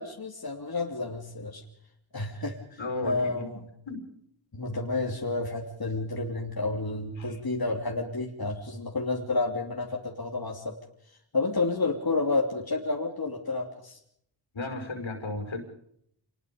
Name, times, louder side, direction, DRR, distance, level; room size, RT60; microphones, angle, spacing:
voice 1, 0.0-1.6 2.1-3.6 4.5-10.7 11.3-14.0, left 3 dB, 50° left, 0 dB, 3.1 m, -30 dB
voice 2, 2.8-3.5 3.9-4.0 7.2-7.4 14.5-15.6, left 2 dB, 75° left, 5 dB, 5.0 m, -34 dB
27.5 x 20.5 x 5.3 m, 0.70 s
wide cardioid pair, 70°, 47 cm